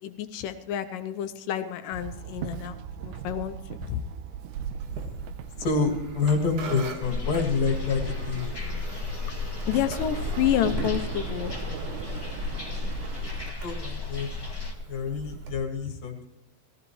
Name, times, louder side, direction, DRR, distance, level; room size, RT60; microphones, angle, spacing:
voice 1, 0.0-2.8 3.0-4.0 9.7-11.5, left 11 dB, 75° left, 9 dB, 2.2 m, -29 dB
Walk footsteps / Chatter / Hiss, 1.9-13.5, right 10 dB, 80° right, 2.0 m, -39 dB
sound 1, 4.8-15.5, right 3 dB, 65° right, 3.1 m, -42 dB
voice 2, 5.6-8.5 13.6-14.3 14.9-16.3, left 4 dB, 50° left, 2 dB, 2.9 m, -27 dB
sound 2, 7.0-14.7, left 3 dB, 25° left, 0.5 m, -33 dB
18.5 x 15.0 x 3.1 m, 0.89 s
omnidirectional pair, 4.1 m